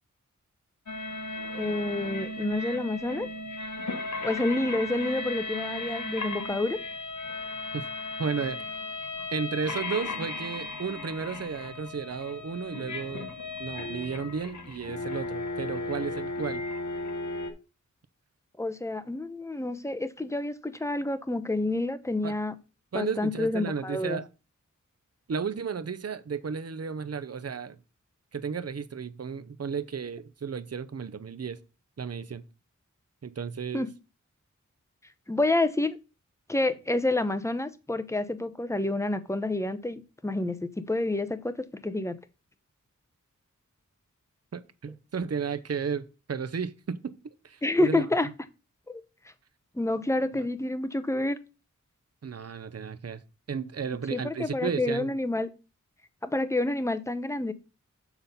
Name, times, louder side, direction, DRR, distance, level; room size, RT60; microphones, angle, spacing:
sound 1, 0.9-17.5, left 2 dB, 65° left, 1.2 m, -36 dB
voice 1, 1.5-3.3 4.2-6.8 18.6-22.5 22.9-24.2 33.7-33.9 35.3-36.0 36.5-41.5 41.8-42.2 47.6-48.3 48.9-49.0 49.7-51.4 53.9-55.5 56.2-57.5, left 2 dB, 10° left, 0.8 m, -28 dB
voice 2, 8.2-8.6 9.3-13.3 13.6-16.6 22.2-22.3 22.9-24.3 25.3-27.8 28.3-31.6 32.0-32.4 33.2-33.9 44.5-48.0 50.3-50.5 52.2-53.2 53.5-55.1, right 6 dB, 50° right, 0.7 m, -33 dB
7.2 x 3.8 x 5.5 m
wide cardioid pair, 50°, 31 cm